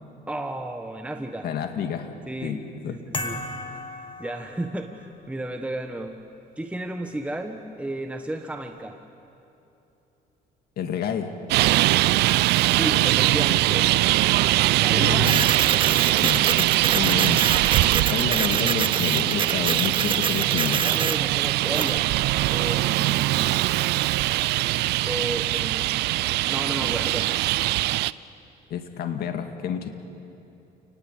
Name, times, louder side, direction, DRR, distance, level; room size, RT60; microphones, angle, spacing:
voice 1, 0.3-1.5 2.3-2.6 2.9-3.4 4.2-6.2 6.6-9.0 12.6-13.9 14.8-15.4 20.8-22.1 22.5-23.5 25.0-25.9 26.5-27.3, right 1 dB, 5° right, 4 dB, 1.3 m, -33 dB
voice 2, 1.4-2.1 2.4-3.0 10.8-11.3 14.9-15.5 16.2-16.7 16.9-17.4 18.1-20.9 28.7-29.9, left 8 dB, 65° left, 6 dB, 2.2 m, -29 dB
sound 1, 3.1-5.0, left 2 dB, 30° left, 2.7 m, -34 dB
Traffic noise roadway noise, 11.5-28.1, right 17 dB, 80° right, 0.5 m, -22 dB
Printer, 15.2-22.0, right 6 dB, 30° right, 0.7 m, -28 dB
29.0 x 19.5 x 8.2 m, 2.9 s
cardioid pair, 110°, 17 cm